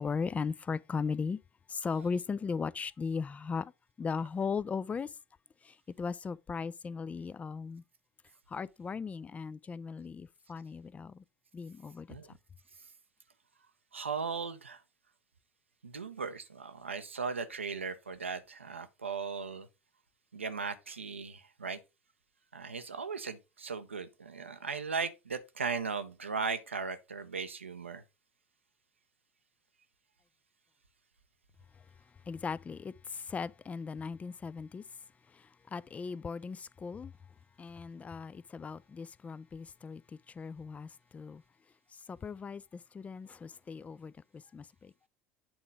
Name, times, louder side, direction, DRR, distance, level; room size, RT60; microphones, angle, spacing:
voice 1, 0.0-1.4 1.7-3.7 4.0-5.1 5.6-7.8 8.5-11.2 11.5-12.1 31.8-31.9 32.3-34.8 35.3-37.1 37.6-41.4 41.9-44.9, left 5 dB, 20° left, 0.4 m, -38 dB
voice 2, 13.9-14.8 15.8-19.7 20.3-21.8 22.5-28.0, right 5 dB, 85° right, 0.7 m, -37 dB
8.7 x 3.9 x 4.8 m
figure-of-eight pair, 70°, 6 cm